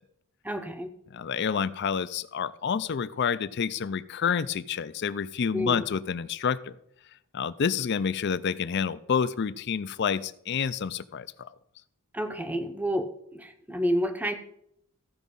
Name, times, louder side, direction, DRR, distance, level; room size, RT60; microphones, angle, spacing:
voice 1, 0.4-0.9 5.5-5.8 12.1-14.4, equal, 5° right, 7 dB, 0.7 m, -29 dB
voice 2, 1.1-6.8 7.3-11.5, left 6 dB, 50° left, 16 dB, 0.4 m, -28 dB
14.5 x 5.1 x 5.4 m, 0.74 s
head